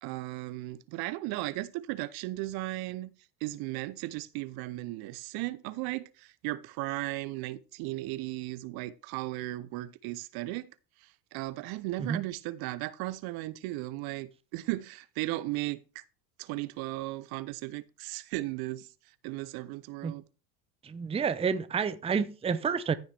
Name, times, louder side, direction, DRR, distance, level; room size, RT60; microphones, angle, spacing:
voice 1, 0.0-3.1 3.4-10.7 11.0-16.0 16.4-20.2, right 18 dB, 50° right, 0.8 m, -36 dB
voice 2, 20.8-22.9, right 6 dB, 15° right, 0.7 m, -29 dB
14.5 x 5.7 x 3.4 m
hypercardioid pair, 80°, 47 cm